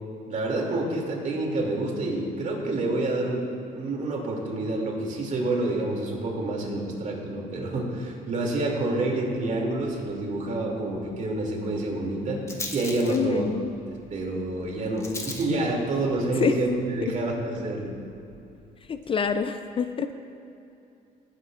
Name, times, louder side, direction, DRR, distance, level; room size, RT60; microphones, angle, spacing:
voice 1, 0.3-3.4 3.7-12.4 12.7-13.5 14.1-17.9, right 2 dB, 50° right, -1 dB, 2.6 m, -28 dB
Rattle, 9.4-19.4, left 2 dB, 15° left, 1.2 m, -44 dB
voice 2, 13.1-13.7 16.4-16.5 18.9-20.1, left 6 dB, 30° left, 9 dB, 0.4 m, -26 dB
19.0 x 10.0 x 2.5 m, 2.7 s
cardioid pair, 110°, 17 cm